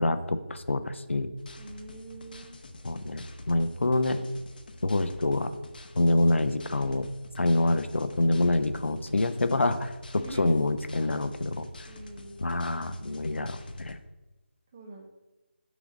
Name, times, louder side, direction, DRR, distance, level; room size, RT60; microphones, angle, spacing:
voice 1, 0.0-1.3 2.8-4.2 4.8-5.5 5.9-7.1 7.4-11.7 12.4-14.0, left 2 dB, 85° left, 10 dB, 0.6 m, -26 dB
sound 1, 1.4-13.9, left 2 dB, 50° left, 0.7 m, -47 dB
voice 2, 1.6-2.5 10.1-10.5 11.9-12.4 14.7-15.1, right 1 dB, 10° right, 2 dB, 0.4 m, -44 dB
6.2 x 3.9 x 5.0 m, 1.1 s
figure-of-eight pair, 170°, 6 cm